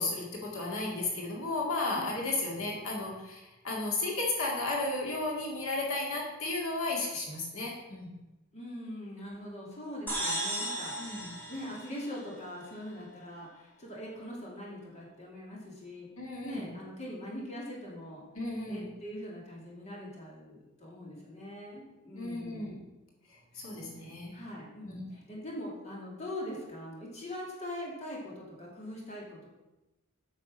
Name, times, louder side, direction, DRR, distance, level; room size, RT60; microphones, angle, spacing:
voice 1, 0.0-8.1 11.0-11.3 16.2-16.7 18.4-18.9 22.2-22.7 23.5-24.3 24.8-25.0, left 2 dB, 65° left, -2 dB, 2.2 m, -34 dB
voice 2, 1.9-2.4 8.5-18.2 18.6-23.0 23.5-24.0 24.3-29.5, left 1 dB, 30° left, -3 dB, 2.5 m, -42 dB
sound 1, 10.1-12.7, right 1 dB, 10° left, 3.0 m, -36 dB
8.6 x 6.3 x 6.3 m, 1.0 s
head